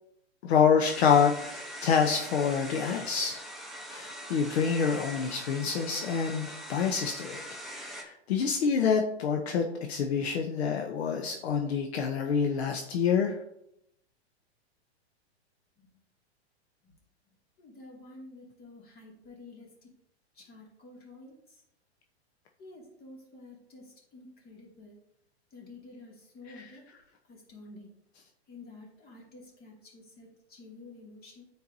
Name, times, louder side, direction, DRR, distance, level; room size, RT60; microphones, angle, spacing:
voice 1, 0.4-3.4 3.9-7.4 7.7-13.4 26.5-26.7, left 6 dB, 70° left, 3 dB, 0.9 m, -27 dB
sound 1, 0.8-8.0, equal, ahead, 0.8 m, -42 dB
voice 2, 17.6-19.9 20.3-21.6 22.6-25.0 25.5-26.9 27.3-27.9 28.5-31.4, left 2 dB, 30° left, -2 dB, 2.3 m, -50 dB
9.3 x 4.5 x 2.7 m, 0.77 s
hypercardioid pair, 120°, 33 cm